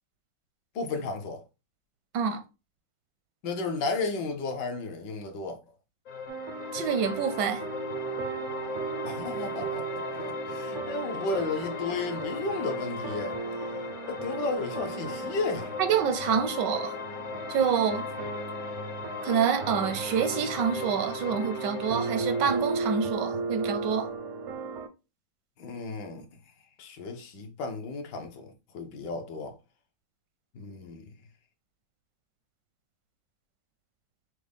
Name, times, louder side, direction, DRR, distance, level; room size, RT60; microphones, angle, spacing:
voice 1, 0.7-1.4 3.4-5.6 9.0-13.4 14.1-15.7 25.6-26.3 26.8-29.6 30.5-31.1, left 3 dB, 75° left, 1.4 m, -33 dB
sound 1, 6.1-23.0, left 5 dB, 60° left, 0.9 m, -38 dB
sound 2, 6.3-24.9, right 5 dB, 65° right, 0.7 m, -36 dB
voice 2, 6.7-7.6 15.8-17.0 17.5-18.0 19.2-24.1, right 7 dB, 85° right, 1.3 m, -27 dB
6.2 x 2.1 x 3.4 m
omnidirectional pair, 1.9 m